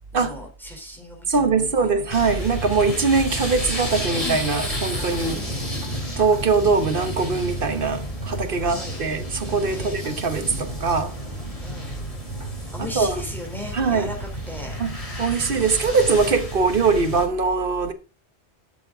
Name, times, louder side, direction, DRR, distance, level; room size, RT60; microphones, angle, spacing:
voice 1, 0.1-1.9 4.2-4.5 5.3-5.8 8.6-9.0 9.7-10.0 11.6-11.9 12.7-14.7, left 1 dB, ahead, 3.4 m, -37 dB
voice 2, 1.3-5.4 6.2-11.1 12.9-13.2 13.7-14.1 14.8-17.9, right 4 dB, 55° right, 1.2 m, -22 dB
sound 1, 2.1-17.2, equal, 30° left, 3.7 m, -31 dB
12.5 x 7.2 x 3.8 m
omnidirectional pair, 1.1 m